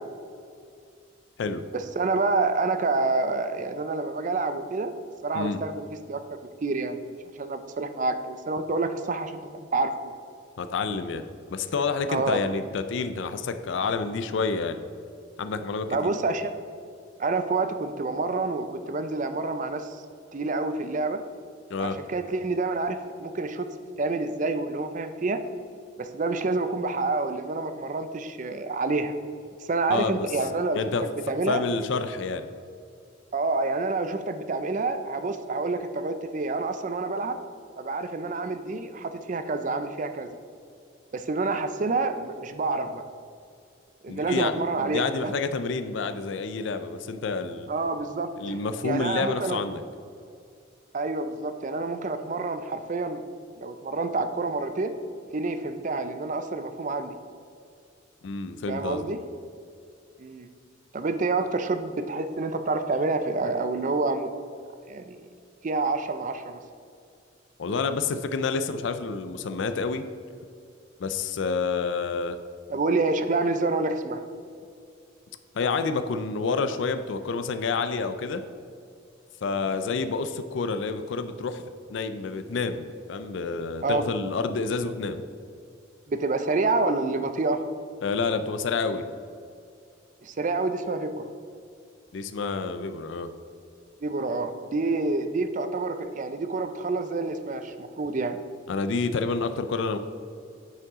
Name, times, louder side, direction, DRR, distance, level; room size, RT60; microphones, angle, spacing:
voice 1, 1.7-5.0 5.2-6.2 6.6-7.0 7.3-10.1 12.1-12.4 15.9-16.6 17.2-20.0 20.3-21.2 21.8-23.7 24.0-25.4 26.0-29.2 29.6-30.8 31.3-31.6 33.3-37.4 37.8-40.4 41.1-43.0 44.0-45.3 47.7-48.6 48.8-49.6 50.9-53.2 53.6-54.9 55.3-57.2 58.7-59.2 60.2-60.5 60.9-64.3 64.9-65.2 65.6-66.6 72.7-74.2 79.7-79.8 83.8-84.0 86.1-87.6 90.2-91.3 94.0-98.4, right 3 dB, 40° right, 9 dB, 0.4 m, -28 dB
voice 2, 10.6-11.2 11.5-14.8 15.4-15.9 21.7-22.0 29.9-30.3 30.7-31.0 31.5-32.4 44.1-44.5 44.8-47.7 48.4-49.8 58.2-59.1 67.6-70.0 71.0-72.4 75.5-78.4 79.4-81.6 81.9-85.2 88.0-89.0 92.1-93.3 98.7-100.0, left 4 dB, 65° left, 9 dB, 0.4 m, -28 dB
9.3 x 5.6 x 3.6 m, 2.4 s
head